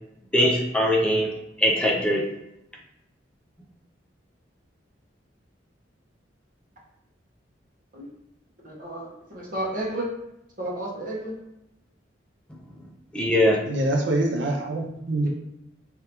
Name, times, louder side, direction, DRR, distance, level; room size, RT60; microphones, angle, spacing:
voice 1, 0.3-1.3 1.6-2.3 13.1-13.6, equal, 5° left, -2 dB, 0.5 m, -21 dB
voice 2, 8.6-10.1 10.6-11.4 15.2-15.3, right 1 dB, 50° right, -4 dB, 1.3 m, -32 dB
voice 3, 13.7-15.3, right 1 dB, 70° right, 1 dB, 0.6 m, -25 dB
3.5 x 3.3 x 2.9 m, 0.87 s
head